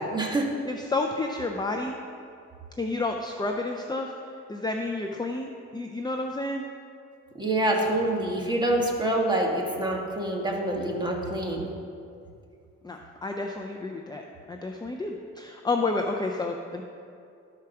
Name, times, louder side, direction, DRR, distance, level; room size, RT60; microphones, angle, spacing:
voice 1, 0.0-0.5 7.4-11.7, right 1 dB, 15° right, -1 dB, 1.8 m, -26 dB
voice 2, 0.6-2.0 2.8-4.1 4.5-6.7 12.8-16.8, left 2 dB, 15° left, 3 dB, 0.6 m, -30 dB
12.5 x 4.9 x 5.9 m, 2.4 s
cardioid pair, 90°, 30 cm